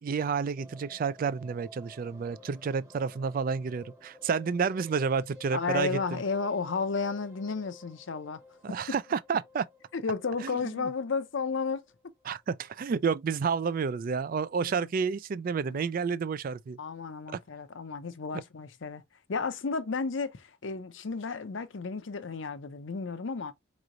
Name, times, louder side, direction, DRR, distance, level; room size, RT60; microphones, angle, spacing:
voice 1, 0.0-6.2 8.6-9.6 10.4-10.9 12.3-16.8 17.3-17.4, right 5 dB, 45° right, 0.3 m, -30 dB
sound 1, 0.6-12.7 13.0-13.1 13.3-13.4 13.7-13.8, left 2 dB, 15° right, 1.0 m, -53 dB
voice 2, 5.5-8.4 8.7-8.8 9.9-11.8 14.6-14.7 15.7-15.8 16.8-19.0 19.3-23.5, left 4 dB, 65° left, 0.6 m, -33 dB
4.9 x 3.1 x 2.5 m
head